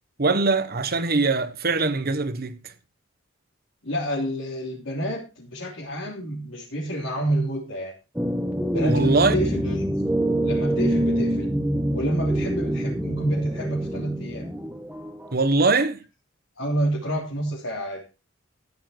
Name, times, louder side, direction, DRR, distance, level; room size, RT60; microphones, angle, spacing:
voice 1, 0.2-2.7 8.8-9.3 15.3-16.0, right 3 dB, 50° right, 1.2 m, -22 dB
voice 2, 3.8-7.9 8.7-9.9 10.4-11.5 11.9-14.5 16.6-18.0, right 1 dB, 70° left, 3.3 m, -28 dB
sound 1, 8.2-15.3, right 1 dB, 5° right, 1.3 m, -25 dB
14.0 x 8.7 x 4.4 m
head